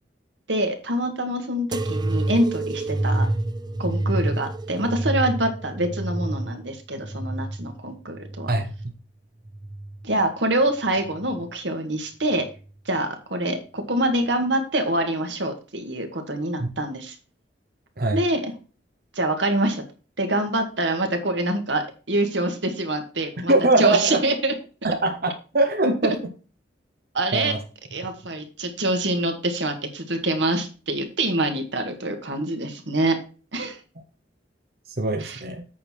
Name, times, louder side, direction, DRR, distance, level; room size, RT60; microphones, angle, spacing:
voice 1, 0.5-3.3 3.8-8.5 10.0-12.5 12.9-17.2 18.1-18.5 19.1-19.8 20.2-24.5 26.0-26.2 27.1-27.5 27.9-33.2 33.5-33.8 35.2-35.4, right 1 dB, 90° right, 6 dB, 2.0 m, -25 dB
sound 1, 1.7-8.9 9.4-10.2 11.0-11.5 12.5-12.6, right 2 dB, 25° right, 0.5 m, -28 dB
voice 2, 23.5-24.2 24.8-26.1 27.3-27.6 35.0-35.7, right 2 dB, 60° right, 5 dB, 1.1 m, -22 dB
8.5 x 6.5 x 4.5 m, 0.36 s
head